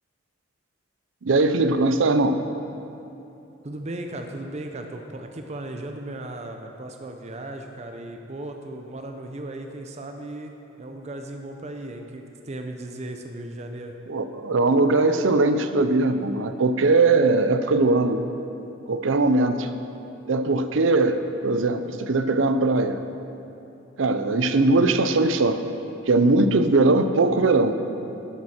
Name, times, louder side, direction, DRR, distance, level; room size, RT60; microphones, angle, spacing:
voice 1, 1.2-2.4 14.1-18.2 18.9-19.7 20.3-23.0 24.0-25.6 26.1-27.8, right 3 dB, 80° right, 9 dB, 0.6 m, -20 dB
voice 2, 3.6-10.5 10.8-13.9, right 1 dB, 35° right, 4 dB, 0.6 m, -36 dB
13.0 x 8.7 x 4.3 m, 2.9 s
head